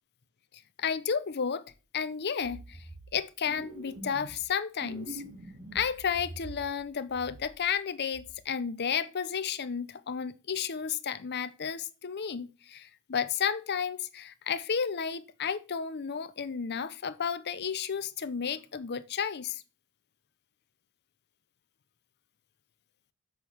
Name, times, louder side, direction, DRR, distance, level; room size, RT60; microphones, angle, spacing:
voice 1, 0.8-1.6 1.9-2.8 3.1-5.2 5.7-19.6, left 7 dB, 50° left, 0.7 m, -32 dB
sound 1, 1.7-1.8 2.4-3.2 3.4-4.5 4.8-6.8 7.1-7.8 8.1-8.4, right 2 dB, 40° right, 2.1 m, -46 dB
7.5 x 6.2 x 5.7 m
head